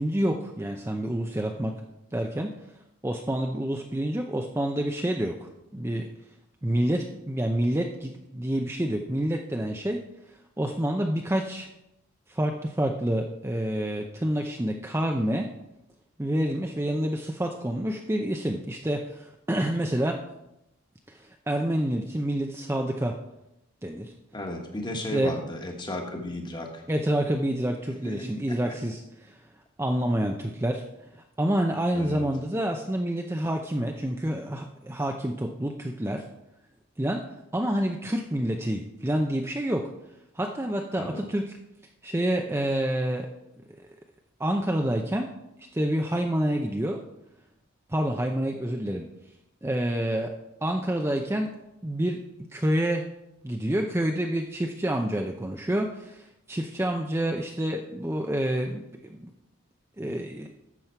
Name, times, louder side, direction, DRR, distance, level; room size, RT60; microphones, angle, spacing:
voice 1, 0.0-1.7 2.1-2.5 3.0-6.1 6.6-10.0 10.6-11.7 12.3-15.5 16.2-20.2 21.1-23.2 23.8-24.1 25.1-25.3 26.9-29.4 29.8-36.2 37.0-37.2 37.5-39.9 40.3-41.4 42.0-43.3 44.4-45.3 45.7-47.0 47.9-49.1 49.6-50.3 50.6-51.5 51.8-52.2 52.5-53.0 53.4-59.3 60.0-60.5, right 1 dB, 10° right, 2 dB, 0.5 m, -28 dB
voice 2, 24.3-26.8 28.0-28.8 31.9-32.3 41.0-41.2, left 1 dB, 20° left, 3 dB, 1.4 m, -35 dB
12.5 x 7.4 x 4.5 m, 0.86 s
head